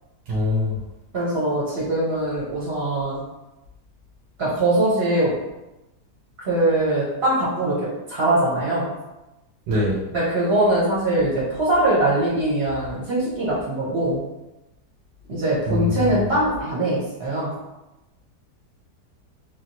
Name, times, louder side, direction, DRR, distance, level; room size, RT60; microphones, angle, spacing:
voice 1, 0.3-0.8 9.7-10.0 15.7-16.2, left 2 dB, 85° right, -6 dB, 1.3 m, -23 dB
voice 2, 1.1-3.2 4.4-5.4 6.4-8.9 10.1-14.2 15.3-17.5, right 1 dB, 45° right, -7 dB, 0.9 m, -22 dB
3.2 x 2.3 x 2.8 m, 0.99 s
omnidirectional pair, 1.8 m